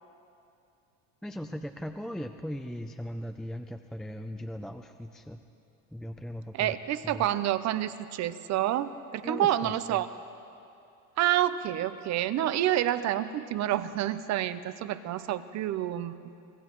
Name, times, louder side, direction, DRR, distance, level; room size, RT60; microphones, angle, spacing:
voice 1, 1.2-5.4 5.9-6.7 7.0-7.2 9.2-9.7, equal, ahead, 5 dB, 0.4 m, -38 dB
voice 2, 6.5-10.1 11.2-16.1, right 12 dB, 50° right, 13 dB, 0.7 m, -28 dB
25.5 x 17.5 x 3.1 m, 2.6 s
supercardioid pair, 120°, 36 cm